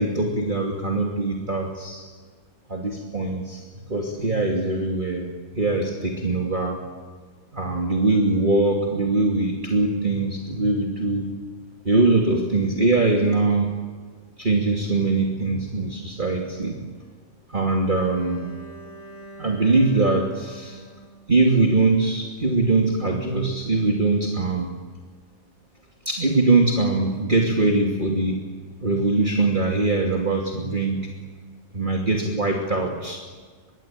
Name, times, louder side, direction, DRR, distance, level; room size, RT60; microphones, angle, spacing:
voice 1, 0.0-2.0 2.7-3.6 3.9-5.3 5.5-6.8 7.5-11.3 11.8-13.7 14.4-16.8 17.5-18.4 19.4-20.8 21.3-24.7 26.0-28.4 28.8-31.1 31.7-33.2, right 3 dB, 30° right, 0 dB, 2.8 m, -22 dB
Bowed string instrument, 17.9-22.0, right 2 dB, 15° left, 5.7 m, -45 dB
25.5 x 22.5 x 9.1 m, 1.5 s
omnidirectional pair, 1.8 m